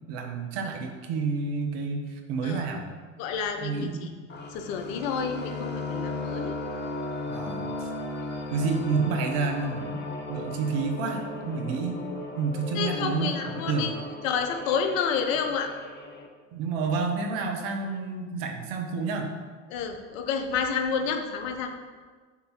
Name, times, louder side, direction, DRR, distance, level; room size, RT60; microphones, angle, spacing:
voice 1, 0.1-2.9 3.6-4.1 7.3-7.9 8.5-10.0 10.3-12.0 12.4-13.3 13.7-13.9 16.5-19.3, right 4 dB, 70° right, 3 dB, 1.2 m, -29 dB
voice 2, 3.2-4.1 4.5-6.5 12.7-13.9 14.2-15.7 19.7-21.7, left 6 dB, 75° left, 5 dB, 0.9 m, -29 dB
sound 1, 4.3-16.3, left 2 dB, 25° left, 1.1 m, -36 dB
6.1 x 3.9 x 5.8 m, 1.5 s
hypercardioid pair, 70°, 39 cm